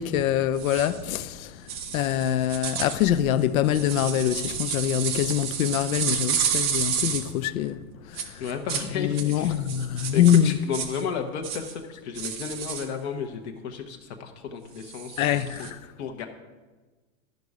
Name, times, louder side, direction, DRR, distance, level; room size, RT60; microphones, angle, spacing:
voice 1, 0.0-1.6 1.9-7.8 8.1-8.4 9.0-10.5 15.2-15.7, left 11 dB, 80° left, 0.6 m, -24 dB
sound 1, 0.6-1.0 1.7-7.3 8.1-8.9 9.1-11.0 11.4-11.7 12.1-12.9 14.8-15.7, right 8 dB, 20° right, 0.3 m, -31 dB
voice 2, 8.4-9.6 10.1-15.7 16.0-16.3, left 6 dB, 55° left, 1.0 m, -33 dB
12.0 x 5.4 x 4.8 m
supercardioid pair, 155°, 41 cm